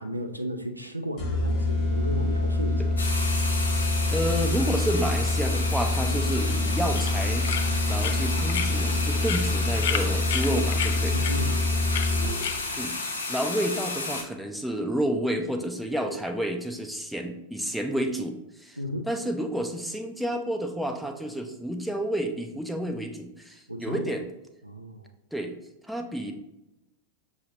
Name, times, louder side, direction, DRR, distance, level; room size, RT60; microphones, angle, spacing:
voice 1, 0.0-3.0 11.1-11.6 18.8-19.1 23.7-24.1 24.6-25.1, equal, 85° right, 5 dB, 0.4 m, -34 dB
sound 1, 1.2-12.6, left 2 dB, 35° left, 0.9 m, -26 dB
sound 2, 3.0-14.2, left 3 dB, 75° left, 0.9 m, -32 dB
voice 2, 4.1-7.5 7.9-11.2 12.8-18.8 19.1-24.3 25.3-25.6 25.8-26.3, right 1 dB, ahead, 3 dB, 0.5 m, -30 dB
sound 3, 6.3-12.9, left 8 dB, 55° left, 0.4 m, -35 dB
6.4 x 2.8 x 2.8 m, 0.90 s
figure-of-eight pair, 90°, 0 cm